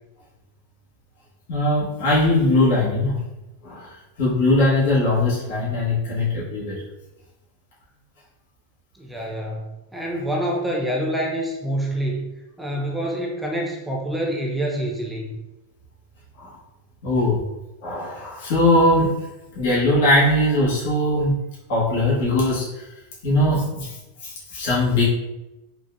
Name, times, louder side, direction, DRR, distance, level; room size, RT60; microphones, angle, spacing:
voice 1, 1.5-3.2 3.6-3.9 4.2-6.8 16.4-16.5 17.0-17.4 17.8-19.3 19.5-21.4 21.7-22.9 23.2-25.1, left 1 dB, 65° left, -7 dB, 1.2 m, -20 dB
voice 2, 8.9-12.3 12.6-15.3, right 1 dB, ahead, -2 dB, 0.4 m, -26 dB
3.8 x 2.4 x 2.2 m, 1.0 s
supercardioid pair, 145°, 0 cm